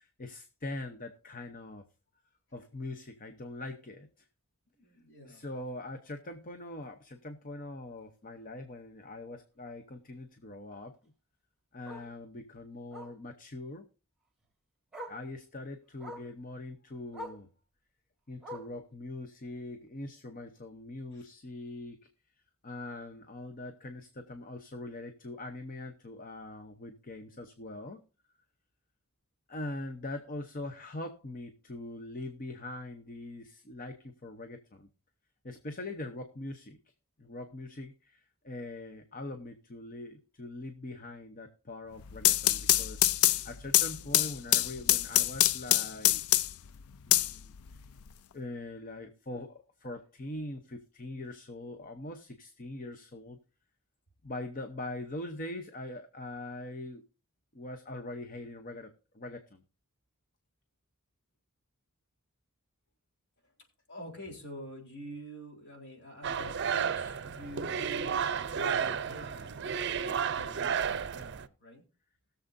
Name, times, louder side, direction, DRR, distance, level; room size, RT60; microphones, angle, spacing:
voice 1, 0.0-1.8 2.5-4.2 5.2-11.1 11.7-13.9 15.1-17.5 18.3-22.0 22.6-28.0 29.5-34.9 35.4-36.8 37.2-46.4 47.1-47.5 48.3-53.4 54.2-57.0 57.5-59.6, left 2 dB, 40° left, 6 dB, 0.9 m, -42 dB
voice 2, 4.8-5.4 21.1-21.3 63.9-68.2 68.5-69.5 69.8-71.8, equal, 55° left, 1 dB, 3.9 m, -47 dB
Bark, 5.4-5.6 6.0-6.1 6.5-6.6 6.8-6.9 8.3-8.4 10.9-11.0 11.9-12.1 12.9-13.2 14.4-14.5 14.9-15.3 16.0-16.3 17.1-17.5 18.4-18.8 19.8-19.9, equal, ahead, 3.0 m, -44 dB
sound 1, 42.0-46.7 47.1-48.1, left 14 dB, 85° left, 0.4 m, -25 dB
sound 2, 66.2-71.5, right 7 dB, 55° right, 0.6 m, -32 dB
20.0 x 7.1 x 2.6 m, 0.34 s
head